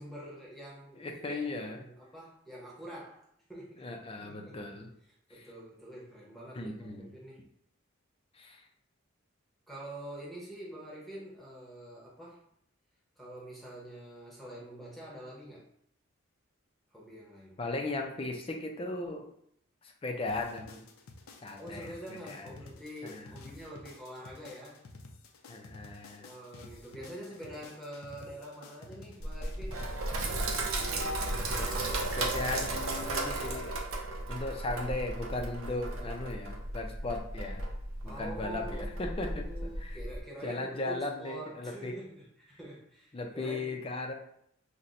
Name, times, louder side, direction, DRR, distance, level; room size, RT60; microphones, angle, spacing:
voice 1, 0.0-3.8 4.2-4.6 5.3-7.4 9.7-12.4 13.2-15.7 16.9-17.6 21.6-24.8 26.2-29.8 38.0-43.8, right 1 dB, ahead, -5 dB, 0.8 m, -46 dB
voice 2, 1.0-1.8 3.8-4.9 5.3-5.5 6.5-7.0 8.3-8.7 17.6-19.3 19.8-20.8 21.4-22.5 23.0-23.4 25.5-26.3 31.5-33.7 34.3-37.6 38.0-40.0 40.4-41.9 43.1-44.1, left 2 dB, 25° left, 3 dB, 0.4 m, -37 dB
sound 1, 20.3-33.1, left 3 dB, 85° left, 0.5 m, -51 dB
Sink (filling or washing), 29.2-40.2, right 2 dB, 85° right, 0.6 m, -35 dB
5.6 x 2.1 x 2.5 m, 0.70 s
head